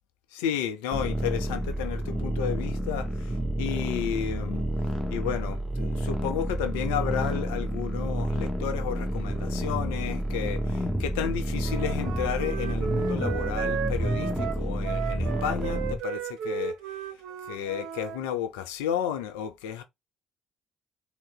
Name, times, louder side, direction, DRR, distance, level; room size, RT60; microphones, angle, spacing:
voice 1, 0.3-4.6 5.1-16.8 17.5-19.8, left 9 dB, 75° left, 0.6 m, -32 dB
sound 1, 0.9-16.0, right 1 dB, ahead, 1.1 m, -29 dB
Wind instrument woodwind instrument, 11.6-18.2, right 8 dB, 65° right, 0.6 m, -35 dB
3.7 x 2.2 x 3.9 m
figure-of-eight pair, 45°, 0 cm